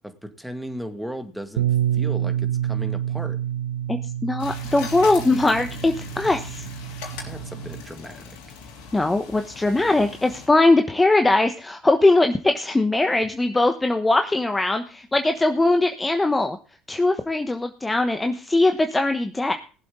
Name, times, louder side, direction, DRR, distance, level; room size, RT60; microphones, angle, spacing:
voice 1, 0.0-1.7 1.9-3.4 7.2-8.6, equal, ahead, 8 dB, 2.1 m, -36 dB
Bass guitar, 1.6-7.8, right 11 dB, 85° right, 0.5 m, -28 dB
voice 2, 3.9-6.7 8.9-16.6 16.9-19.5, left 2 dB, 15° left, 7 dB, 1.2 m, -21 dB
sound 1, 4.4-10.5, left 5 dB, 70° left, 3.4 m, -39 dB
19.0 x 7.7 x 3.8 m, 0.37 s
hypercardioid pair, 70°, 0 cm